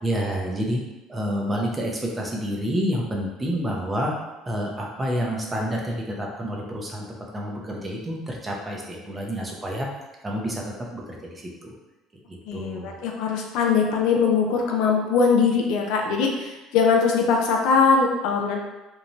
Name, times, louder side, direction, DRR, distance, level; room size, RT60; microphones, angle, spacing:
voice 1, 0.0-0.8 1.1-4.1 4.5-9.9 10.2-10.6 10.9-11.7 12.1-12.9, equal, 15° right, -1 dB, 0.5 m, -29 dB
voice 2, 12.5-18.6, left 5 dB, 75° left, 1 dB, 0.4 m, -21 dB
3.0 x 2.2 x 2.6 m, 1.0 s
cardioid pair, 125°, 0 cm